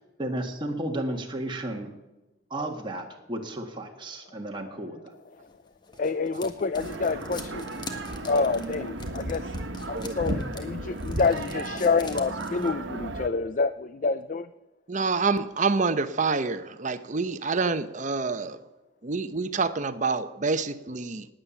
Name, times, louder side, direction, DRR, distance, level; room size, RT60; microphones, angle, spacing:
voice 1, 0.0-1.9 2.5-5.1, right 1 dB, 25° right, 1 dB, 1.6 m, -33 dB
sound 1, 5.5-12.7, left 2 dB, 25° left, 1.5 m, -43 dB
voice 2, 6.0-7.6 8.2-9.5 9.9-14.5, left 4 dB, 40° left, 13 dB, 0.4 m, -27 dB
sound 2, 6.7-13.3, right 2 dB, 70° right, 1.3 m, -35 dB
voice 3, 14.9-18.6 19.0-21.3, right 4 dB, 40° right, 11 dB, 0.8 m, -27 dB
19.0 x 9.0 x 7.1 m, 1.1 s
head